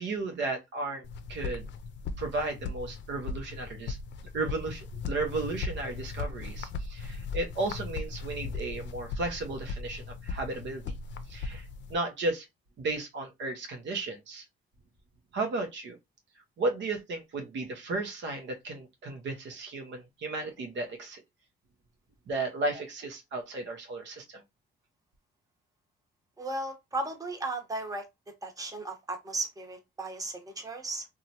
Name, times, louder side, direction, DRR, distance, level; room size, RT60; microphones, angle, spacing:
voice 1, 0.0-1.7 2.2-4.0 4.3-10.9 11.3-11.6 11.9-12.5 12.8-14.4 15.3-16.0 16.6-21.2 22.3-24.4, right 2 dB, 65° right, 0.8 m, -34 dB
sound 1, 1.0-12.0, left 4 dB, 65° left, 0.5 m, -38 dB
voice 2, 26.4-28.1 28.4-31.1, right 2 dB, 15° right, 0.9 m, -35 dB
2.9 x 2.4 x 2.8 m
cardioid pair, 90°, 20 cm